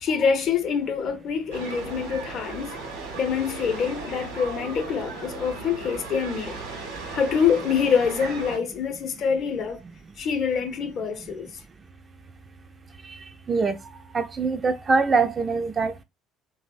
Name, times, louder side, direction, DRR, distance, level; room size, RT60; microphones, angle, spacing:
voice 1, 0.0-2.8 3.2-6.6 7.1-9.8 10.2-11.5, left 6 dB, 55° left, 0.6 m, -25 dB
sound 1, 1.5-8.6, right 3 dB, 80° right, 0.8 m, -36 dB
voice 2, 14.1-16.0, right 4 dB, 35° right, 0.4 m, -23 dB
2.7 x 2.0 x 2.5 m
hypercardioid pair, 60°, 0 cm